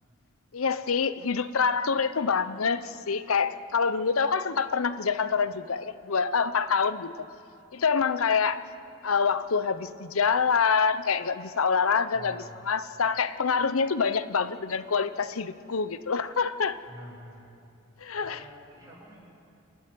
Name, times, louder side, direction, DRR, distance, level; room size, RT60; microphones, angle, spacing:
voice 1, 0.5-7.1 7.7-8.6 9.0-16.8 18.0-18.4, left 5 dB, 80° left, 0.8 m, -26 dB
voice 2, 12.1-12.7 16.8-17.5 18.1-19.2, equal, 15° right, 7.0 m, -47 dB
28.5 x 11.0 x 9.4 m
head